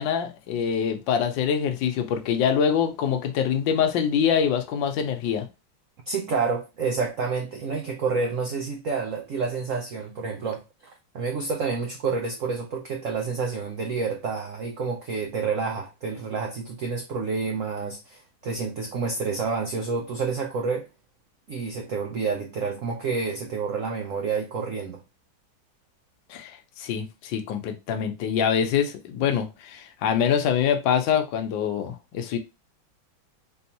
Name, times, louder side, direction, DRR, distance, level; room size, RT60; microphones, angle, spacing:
voice 1, 0.0-5.5 26.3-32.4, left 8 dB, 75° left, 1.4 m, -25 dB
voice 2, 6.1-20.9 21.5-25.0, right 4 dB, 85° right, 0.7 m, -29 dB
3.9 x 3.5 x 2.8 m
omnidirectional pair, 2.2 m